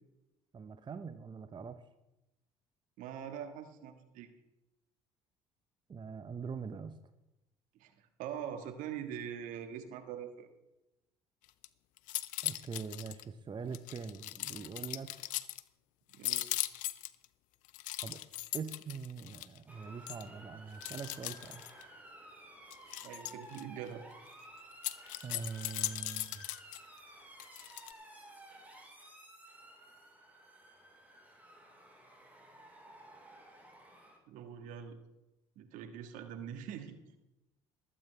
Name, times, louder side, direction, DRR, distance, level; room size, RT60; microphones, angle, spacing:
voice 1, 0.5-1.8 5.9-7.0 12.4-15.3 18.0-18.2 18.5-21.6 25.2-26.5, right 5 dB, 35° right, 10 dB, 0.8 m, -43 dB
voice 2, 3.0-4.3 7.7-10.5 16.1-16.5 23.0-24.1 34.3-35.0 35.5-37.0, right 8 dB, 65° right, 7 dB, 1.6 m, -43 dB
sound 1, 11.4-11.7 12.0-13.2 13.7-15.6 16.1-17.3 17.7-19.6 20.1-20.2 20.8-21.8 22.7-23.6 24.7-26.8 27.4-27.9, left 17 dB, 65° left, 0.6 m, -39 dB
Motor vehicle (road) / Siren, 19.7-34.2, right 1 dB, 10° right, 4.4 m, -54 dB
21.0 x 8.7 x 3.4 m, 0.95 s
hypercardioid pair, 60°, 14 cm